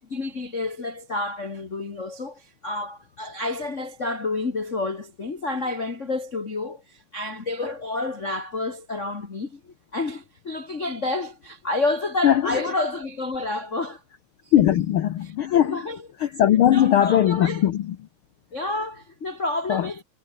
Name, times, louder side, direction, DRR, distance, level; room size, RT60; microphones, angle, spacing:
voice 1, 0.0-14.0 14.4-14.6 15.2-16.1 16.7-17.7 18.5-20.0, left 2 dB, 30° left, 1.7 m, -29 dB
voice 2, 14.5-15.8 16.2-17.9 19.7-19.8, left 11 dB, 75° left, 1.2 m, -19 dB
omnidirectional pair, 3.7 m